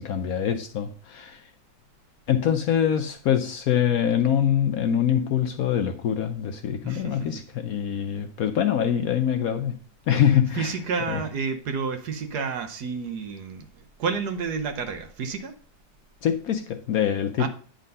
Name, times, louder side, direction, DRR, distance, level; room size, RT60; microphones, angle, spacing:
voice 1, 0.0-1.4 2.3-9.8 10.1-10.8 11.1-11.2 16.2-17.5, left 9 dB, 70° left, 0.9 m, -24 dB
voice 2, 6.8-7.3 10.5-15.5 17.4-17.5, right 5 dB, 65° right, 1.4 m, -30 dB
9.1 x 3.9 x 5.3 m
omnidirectional pair, 1.9 m